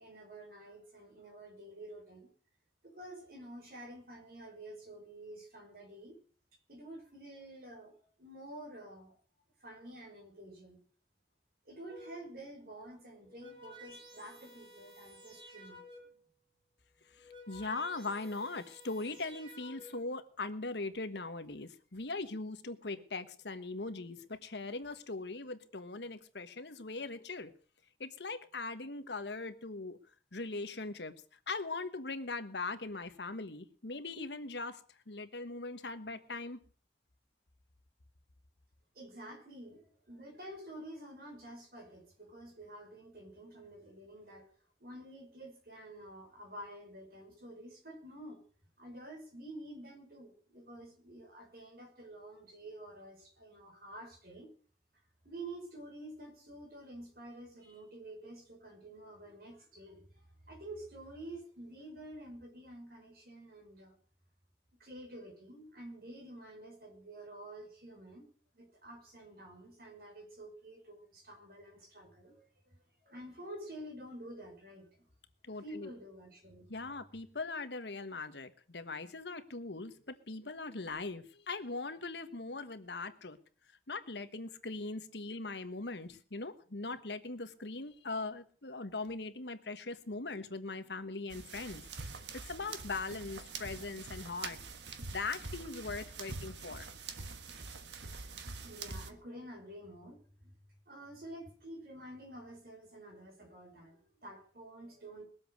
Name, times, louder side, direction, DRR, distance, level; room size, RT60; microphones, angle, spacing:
voice 1, 0.0-2.3 2.8-6.1 6.7-9.1 9.6-10.8 11.7-15.8 38.9-44.5 44.8-48.4 48.8-54.5 55.2-63.9 64.8-68.3 68.5-75.1 75.6-76.7 98.6-100.5 100.9-105.2, right 1 dB, 55° right, 2 dB, 5.6 m, -49 dB
sound 1, 11.9-12.4 13.1-16.3 17.0-20.2, equal, 30° right, 4.8 m, -54 dB
voice 2, 17.2-27.5 28.0-30.0 30.3-31.1 31.5-34.8 35.1-36.6 75.4-75.9 76.7-83.4 83.9-94.6 95.1-96.9, left 3 dB, 80° left, 10 dB, 1.4 m, -40 dB
sound 2, 91.3-99.1, right 4 dB, 90° right, 1.4 m, -45 dB
21.0 x 7.9 x 6.5 m, 0.43 s
head